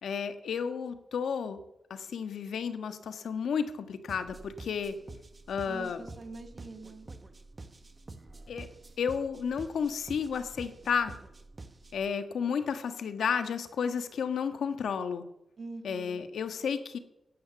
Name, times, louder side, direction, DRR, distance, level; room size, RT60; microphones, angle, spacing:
voice 1, 0.0-1.6 1.9-5.0 5.5-6.0 8.5-8.7 9.0-11.1 11.9-15.2 15.8-17.0, left 6 dB, 90° left, 9 dB, 1.4 m, -32 dB
sound 1, 4.1-12.1, right 2 dB, 30° right, 1.3 m, -48 dB
voice 2, 5.7-7.1 15.6-16.2, right 2 dB, 50° right, 7 dB, 2.0 m, -44 dB
16.0 x 11.0 x 7.1 m, 0.86 s
wide cardioid pair, 100°, 0 cm